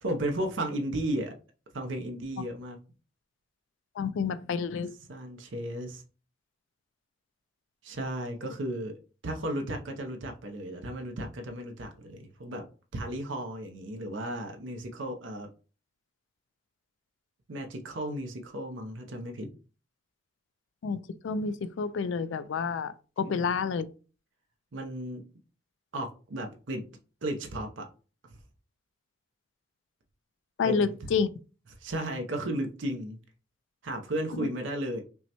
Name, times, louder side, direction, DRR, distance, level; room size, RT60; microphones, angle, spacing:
voice 1, 0.0-1.3 1.7-2.8 5.1-6.0 7.8-8.9 9.2-12.7 12.9-15.5 17.5-19.5 23.3-23.5 24.7-25.3 25.9-26.9 27.2-27.9 30.6-30.9 31.8-33.2 33.8-35.0, right 1 dB, 70° right, 0.6 m, -34 dB
voice 2, 4.0-5.0 20.8-23.9 30.6-31.3 34.4-34.5, left 5 dB, 65° left, 0.3 m, -29 dB
5.3 x 2.1 x 2.9 m
head